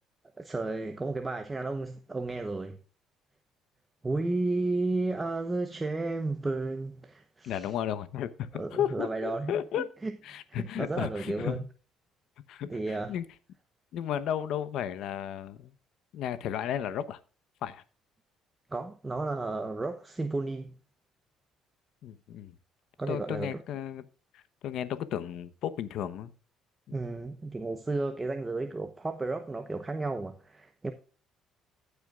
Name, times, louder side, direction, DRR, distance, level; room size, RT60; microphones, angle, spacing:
voice 1, 0.4-2.8 4.0-7.7 8.5-10.1 10.5-11.6 12.6-13.1 18.7-20.7 23.0-23.6 26.9-30.9, right 2 dB, 15° right, 0.9 m, -33 dB
voice 2, 7.4-9.8 10.2-11.6 12.5-13.2 13.9-15.7 16.1-17.2 17.6-17.8 22.0-22.5 23.1-24.0 24.3-26.3 26.9-27.0, left 10 dB, 70° left, 0.9 m, -34 dB
15.0 x 8.1 x 2.4 m
cardioid pair, 120°, 0 cm